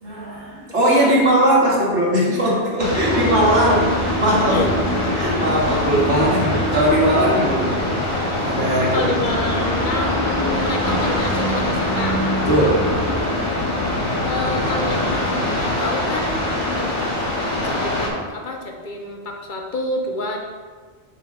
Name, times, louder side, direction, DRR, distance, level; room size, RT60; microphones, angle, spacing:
voice 1, 0.0-4.6 5.2-7.8 8.4-9.1 9.8-9.9 12.5-12.9, right 1 dB, 90° right, -5 dB, 2.0 m, -19 dB
voice 2, 0.8-1.4 4.5-5.4 7.1-7.2 8.9-12.2 14.2-16.4 16.8-17.1 17.6-20.4, left 2 dB, 50° left, 2 dB, 0.8 m, -29 dB
sound 1, 2.8-18.1, left 1 dB, 65° left, 1.7 m, -23 dB
sound 2, 2.9-13.2, right 1 dB, 15° left, 0.5 m, -27 dB
7.8 x 3.3 x 4.7 m, 1.5 s
omnidirectional pair, 1.2 m